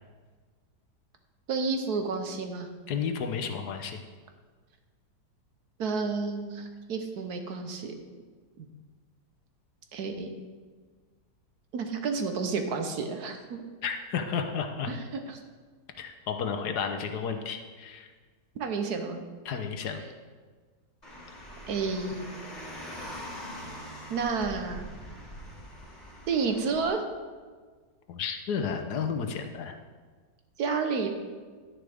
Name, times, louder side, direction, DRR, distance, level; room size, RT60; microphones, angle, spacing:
voice 1, 1.5-2.7 5.8-7.9 8.6-8.7 9.9-10.3 11.7-13.6 14.9-15.4 18.6-19.2 21.7-22.3 24.1-24.9 26.3-27.0 30.6-31.1, right 4 dB, 65° right, 5 dB, 1.4 m, -30 dB
voice 2, 2.9-4.0 13.8-14.9 16.0-18.1 19.5-20.0 28.1-29.7, left 6 dB, 65° left, 6 dB, 1.3 m, -32 dB
Car, 21.0-26.9, equal, 20° left, 2.7 m, -43 dB
11.0 x 9.7 x 3.5 m, 1.5 s
omnidirectional pair, 1.9 m